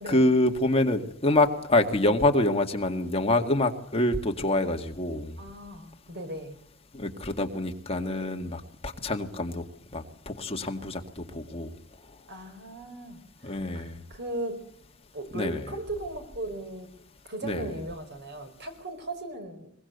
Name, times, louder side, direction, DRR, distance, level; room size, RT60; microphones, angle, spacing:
voice 1, 0.0-5.4 6.9-9.6 9.9-11.7 13.4-14.0 15.3-15.6 17.4-17.7, left 2 dB, 30° left, 4 dB, 2.0 m, -26 dB
voice 2, 5.4-6.6 12.3-14.6 15.1-16.9 17.2-19.7, right 2 dB, 55° right, 7 dB, 4.6 m, -37 dB
22.5 x 20.5 x 8.1 m, 0.64 s
head